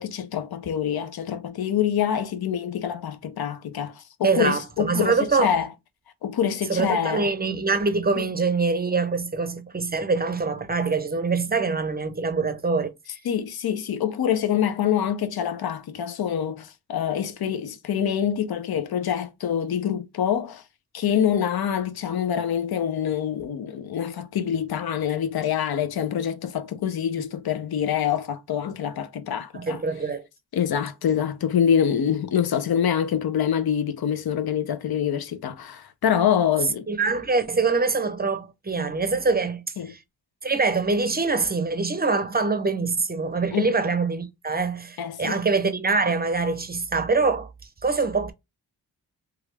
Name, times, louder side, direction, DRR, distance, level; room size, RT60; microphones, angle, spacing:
voice 1, 0.0-5.7 6.2-7.3 13.2-20.6 20.9-29.8 30.5-36.9 39.8-39.9 43.5-43.7 45.0-45.4, left 9 dB, 65° left, 0.6 m, -25 dB
voice 2, 4.2-5.5 6.7-12.9 29.5-30.2 36.9-40.0 40.4-47.5 47.8-48.3, right 4 dB, 25° right, 0.6 m, -24 dB
3.1 x 2.4 x 3.1 m
cardioid pair, 60°, 40 cm